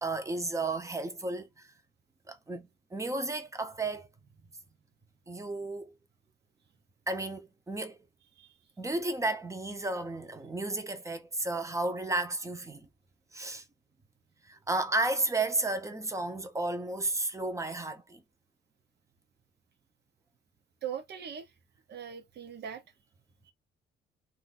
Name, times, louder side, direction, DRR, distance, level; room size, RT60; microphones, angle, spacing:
voice 1, 0.0-1.7 2.3-4.1 5.3-5.9 7.1-8.0 8.8-12.9 13.3-13.6 14.4-18.2, right 2 dB, 15° right, 0.7 m, -33 dB
voice 2, 20.8-21.5 21.9-22.8 23.5-23.6, right 8 dB, 55° right, 0.8 m, -40 dB
2.6 x 2.4 x 4.0 m
cardioid pair, 90°, 20 cm